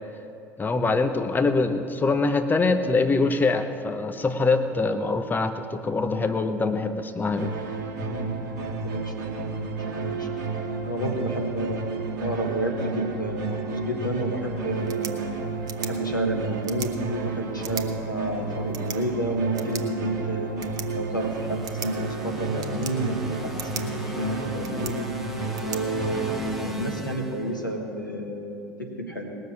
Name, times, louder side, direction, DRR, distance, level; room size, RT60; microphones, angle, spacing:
voice 1, 0.6-7.5, left 3 dB, 20° left, 8 dB, 0.9 m, -24 dB
sound 1, 7.4-26.5, right 4 dB, 70° right, 1.2 m, -32 dB
voice 2, 8.0-8.4 8.8-9.8 10.0-10.3 10.9-15.3 15.8-20.5 21.0-25.1 25.6-29.3, right 1 dB, 90° left, 1 dB, 1.4 m, -30 dB
sound 2, 14.7-26.7, right 7 dB, 40° right, 1.1 m, -42 dB
sound 3, 21.1-28.0, equal, ahead, 1.2 m, -39 dB
19.5 x 6.8 x 7.3 m, 2.6 s
figure-of-eight pair, 65°, 10 cm